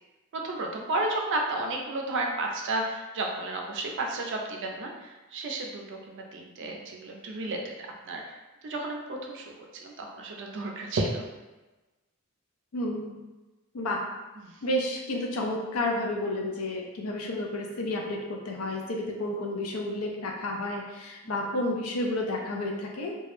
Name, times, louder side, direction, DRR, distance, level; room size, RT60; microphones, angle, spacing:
voice 1, 0.4-7.6 8.1-8.4 8.6-11.2 14.4-14.5 21.2-21.3, right 2 dB, 60° right, 1 dB, 0.4 m, -32 dB
voice 2, 12.7-13.2 13.7-14.0 14.6-23.1, left 1 dB, 75° left, 0 dB, 0.5 m, -31 dB
2.2 x 2.0 x 3.0 m, 1.1 s
head